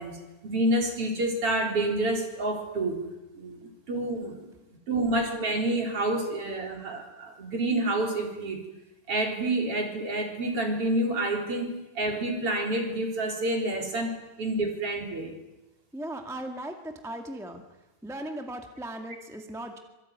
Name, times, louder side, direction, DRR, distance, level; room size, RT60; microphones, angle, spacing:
voice 1, 0.0-3.0 3.3-4.5 4.9-8.6 9.1-15.3, right 1 dB, 40° right, 3 dB, 4.8 m, -28 dB
voice 2, 15.9-17.6 18.0-19.8, right 1 dB, ahead, 4 dB, 1.3 m, -37 dB
26.0 x 23.0 x 9.6 m, 1.0 s
omnidirectional pair, 4.0 m